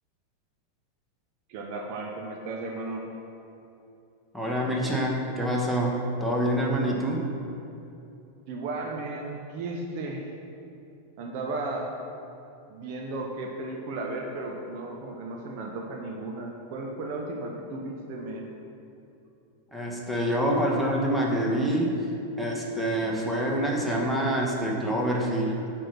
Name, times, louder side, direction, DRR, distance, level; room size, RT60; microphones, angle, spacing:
voice 1, 1.5-3.0 8.5-10.3 11.2-11.9 12.7-18.5, right 2 dB, 45° right, 0 dB, 0.9 m, -35 dB
voice 2, 4.3-7.2 19.7-21.9 22.4-25.6, right 1 dB, ahead, -2 dB, 1.4 m, -26 dB
9.1 x 4.5 x 6.0 m, 2.7 s
figure-of-eight pair, 90°, 0 cm